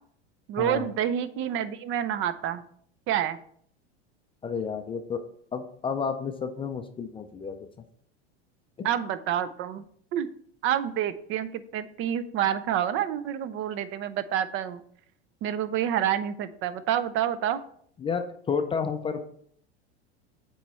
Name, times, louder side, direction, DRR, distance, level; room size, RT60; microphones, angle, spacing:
voice 1, 0.5-2.6 3.1-3.4 8.8-9.8 10.1-10.3 10.6-14.8 15.4-17.6, right 10 dB, 40° right, 14 dB, 0.5 m, -28 dB
voice 2, 4.4-5.2 5.5-7.6 8.8-8.9 18.0-19.2, left 6 dB, 15° left, 6 dB, 0.4 m, -31 dB
7.9 x 3.1 x 4.2 m, 0.63 s
supercardioid pair, 115°, 33 cm